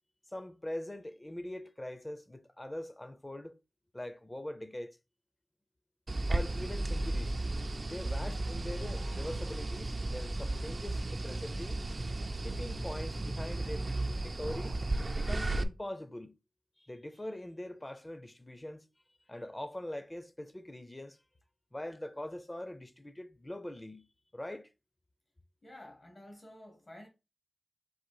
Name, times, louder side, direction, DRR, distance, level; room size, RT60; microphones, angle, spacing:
voice 1, 0.3-3.6 3.9-5.0 6.3-7.4 7.9-11.9 12.4-14.8 15.1-16.3 16.8-18.9 19.3-21.2 21.7-24.1 24.3-24.7, left 1 dB, 25° left, 0.5 m, -42 dB
sound 1, 6.1-15.6, right 2 dB, 55° right, 0.4 m, -34 dB
voice 2, 25.6-27.1, left 1 dB, 55° left, 1.1 m, -51 dB
3.9 x 2.4 x 4.7 m
cardioid pair, 50°, 0 cm